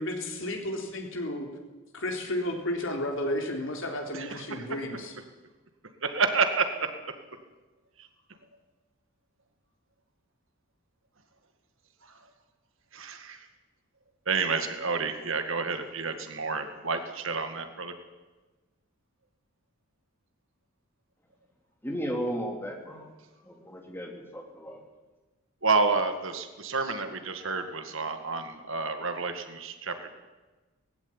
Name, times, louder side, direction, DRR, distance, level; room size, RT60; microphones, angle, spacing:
voice 1, 0.0-1.5 1.9-5.1, left 1 dB, 55° left, 3 dB, 3.7 m, -32 dB
voice 2, 4.1-4.8 6.0-6.9 8.0-8.1 12.9-13.5 14.3-18.0 25.6-29.9, right 4 dB, 60° right, 8 dB, 2.0 m, -29 dB
voice 3, 21.8-23.1 23.4-24.8, equal, 10° left, 1 dB, 3.1 m, -35 dB
18.5 x 15.5 x 9.9 m, 1.2 s
head